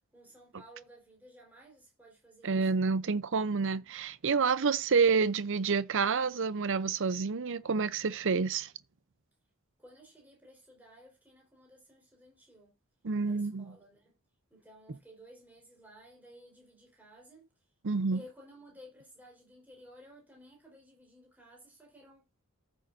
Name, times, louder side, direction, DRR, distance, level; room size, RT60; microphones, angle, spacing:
voice 1, 0.1-3.0 9.8-12.7 13.2-14.2 14.5-17.5 18.1-22.4, equal, 10° right, 4.3 m, -56 dB
voice 2, 2.4-8.7 13.0-13.7 17.8-18.2, right 5 dB, 60° right, 0.6 m, -28 dB
15.0 x 6.4 x 2.6 m
head